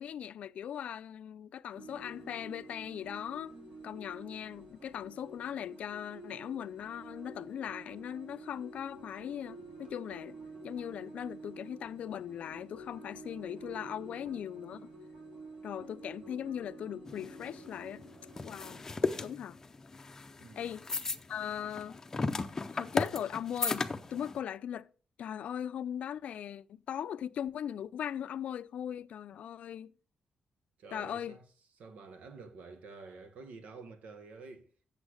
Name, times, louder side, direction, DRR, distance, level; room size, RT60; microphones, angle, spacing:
voice 1, 0.0-3.5 3.8-10.4 10.6-14.9 15.6-18.0 18.4-18.8 19.2-19.6 20.6-20.9 21.3-22.0 22.7-24.9 25.2-29.9 30.9-31.4, left 9 dB, 70° left, 0.4 m, -39 dB
sound 1, 1.7-18.8, right 2 dB, 60° right, 3.2 m, -50 dB
sound 2, 17.1-24.4, left 3 dB, 20° left, 0.6 m, -36 dB
voice 2, 20.4-20.7 30.8-31.4 31.8-34.7, right 4 dB, 85° right, 1.4 m, -49 dB
8.2 x 7.0 x 4.9 m
wide cardioid pair, 170°, 2 cm